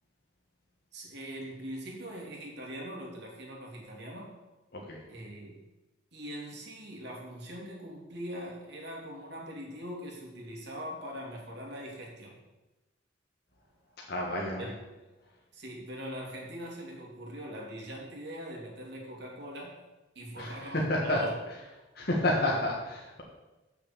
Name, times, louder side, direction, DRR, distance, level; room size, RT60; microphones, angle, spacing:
voice 1, 0.9-4.3 5.1-5.6 6.1-12.4 14.6-14.7 15.5-19.8 20.1-21.4, equal, 60° right, -2 dB, 2.7 m, -42 dB
voice 2, 14.1-14.7 20.4-21.2 21.9-23.2, left 1 dB, 55° left, -3 dB, 1.7 m, -30 dB
8.2 x 6.6 x 7.2 m, 1.1 s
head